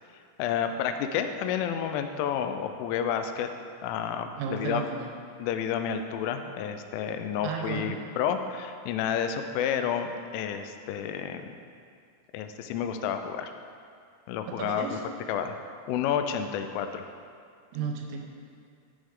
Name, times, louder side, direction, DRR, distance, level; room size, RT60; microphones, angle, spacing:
voice 1, 0.4-3.5 3.8-4.9 5.4-11.6 12.3-13.5 14.3-14.9 15.3-15.6 15.9-17.1, left 8 dB, 85° left, 7 dB, 3.1 m, -30 dB
voice 2, 4.4-5.1 7.4-7.9 14.5-15.0 17.7-18.3, right 7 dB, 85° right, 2 dB, 3.0 m, -33 dB
13.0 x 5.3 x 3.7 m, 2.3 s
omnidirectional pair, 5.6 m